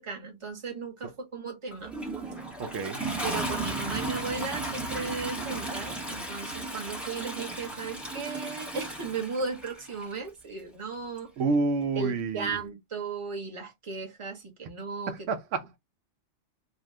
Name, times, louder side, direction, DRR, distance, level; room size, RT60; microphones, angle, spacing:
voice 1, 0.0-1.9 3.2-11.3 11.9-15.2, right 4 dB, 25° right, 0.9 m, -36 dB
Toilet flush, 1.7-10.1 11.2-11.3, right 2 dB, ahead, 0.8 m, -35 dB
voice 2, 2.6-3.0 11.4-12.5 15.1-15.8, right 4 dB, 80° right, 0.9 m, -29 dB
2.7 x 2.2 x 3.2 m
omnidirectional pair, 1.3 m